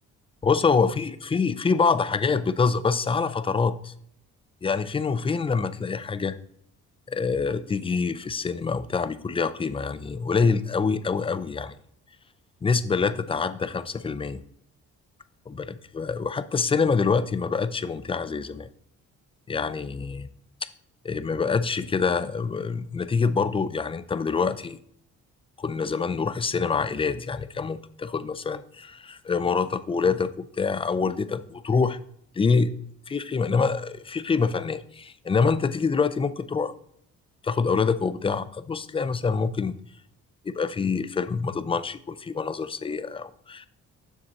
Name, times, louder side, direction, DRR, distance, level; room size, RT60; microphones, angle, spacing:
voice 1, 0.4-3.9 4.6-6.4 7.1-11.7 12.6-14.4 15.5-18.7 19.5-20.3 21.0-24.8 25.6-32.0 32.4-32.7 33.1-36.7 37.4-39.7 40.5-43.7, left 5 dB, 20° left, 14 dB, 0.4 m, -26 dB
7.4 x 6.3 x 2.9 m, 0.68 s
cardioid pair, 90°, 30 cm